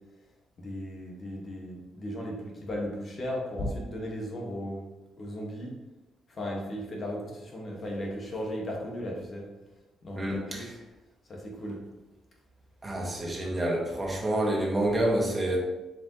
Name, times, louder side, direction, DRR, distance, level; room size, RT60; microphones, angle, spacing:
voice 1, 0.6-4.9 5.2-5.8 6.3-9.5 10.0-10.8 11.3-11.8 14.2-14.5, equal, 45° left, -1 dB, 1.8 m, -36 dB
voice 2, 10.2-10.7 12.8-15.6, right 1 dB, 20° right, -2 dB, 1.9 m, -28 dB
7.2 x 5.2 x 3.2 m, 1.1 s
cardioid pair, 90°, 0 cm